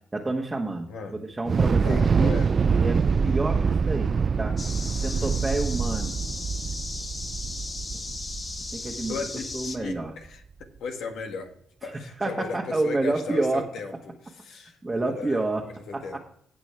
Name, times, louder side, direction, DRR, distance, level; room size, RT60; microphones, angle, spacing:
voice 1, 0.1-2.3 2.6-4.6 5.0-6.1 7.9-8.0 8.7-9.1 9.5-10.1 11.9-13.7 14.8-15.6 15.9-16.0, right 2 dB, 20° right, -1 dB, 1.5 m, -29 dB
voice 2, 0.9-1.2 1.8-2.6 5.1-5.4 9.1-11.5 11.8-16.2, left 4 dB, 75° left, 4 dB, 1.9 m, -37 dB
Thunder / Explosion, 1.5-9.7, right 5 dB, 40° right, 0.3 m, -25 dB
sound 1, 4.6-9.8, left 3 dB, 30° left, 1.1 m, -36 dB
17.0 x 6.2 x 3.4 m, 0.63 s
cardioid pair, 90°, 0 cm